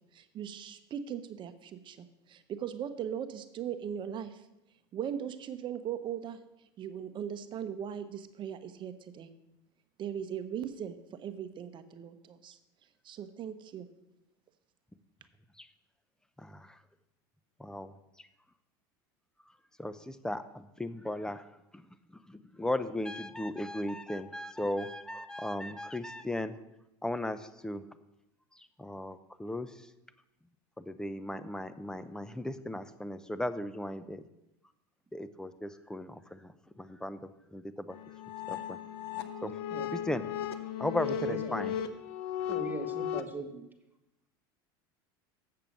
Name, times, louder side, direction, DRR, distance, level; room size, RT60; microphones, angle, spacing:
voice 1, 0.1-4.4 4.9-6.4 6.8-9.3 10.0-12.6 13.0-13.9, right 9 dB, 40° right, 11 dB, 0.9 m, -39 dB
voice 2, 16.4-16.8 17.6-18.3 19.8-21.5 21.7-21.8 22.1-26.6 27.0-27.8 28.6-29.9 30.8-34.2 35.1-37.2 37.5-38.0 38.5-38.8 39.4-39.5 39.9-40.2 40.8-41.7, left 1 dB, 5° left, 13 dB, 0.6 m, -37 dB
sound 1, 37.9-43.2, left 9 dB, 80° left, 0.7 m, -36 dB
voice 3, 41.3-41.6 42.5-43.6, right 3 dB, 15° right, 5 dB, 1.4 m, -40 dB
7.7 x 6.7 x 7.1 m, 0.90 s
supercardioid pair, 105°, 13 cm